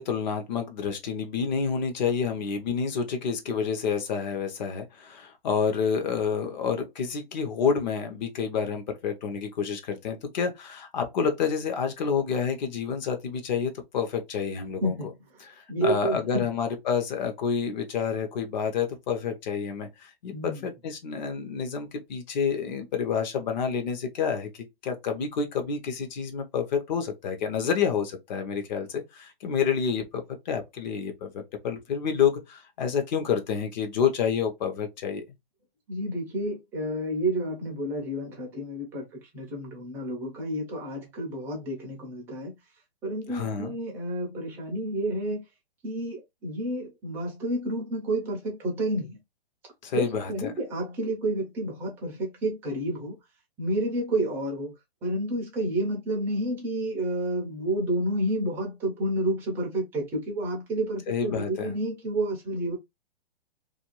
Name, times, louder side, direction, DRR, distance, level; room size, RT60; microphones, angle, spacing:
voice 1, 0.0-14.9 15.5-24.5 24.8-35.2 43.3-43.8 49.8-50.5 61.1-61.7, left 6 dB, 45° left, 0.8 m, -29 dB
voice 2, 14.8-16.5 20.3-20.7 35.9-42.6 43.0-45.4 45.8-49.2 49.9-53.2 53.6-54.7 55.0-62.8, right 1 dB, 10° right, 0.4 m, -30 dB
2.5 x 2.3 x 2.9 m
hypercardioid pair, 150°, 30 cm